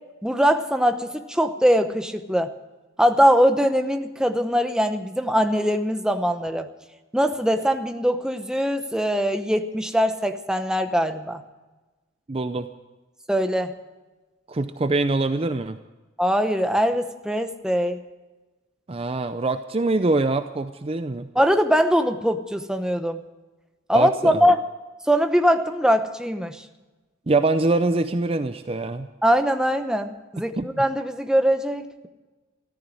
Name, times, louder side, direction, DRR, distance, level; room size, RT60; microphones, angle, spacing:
voice 1, 0.2-2.5 3.0-6.7 7.1-11.4 13.3-13.7 16.2-18.0 21.4-23.2 23.9-24.6 25.1-26.6 29.2-32.1, equal, 5° right, 7 dB, 0.8 m, -22 dB
voice 2, 12.3-12.7 14.5-15.8 18.9-21.3 23.9-24.5 27.3-29.1 30.6-30.8, right 2 dB, 30° right, 10 dB, 0.5 m, -24 dB
14.0 x 14.0 x 6.3 m, 1.2 s
head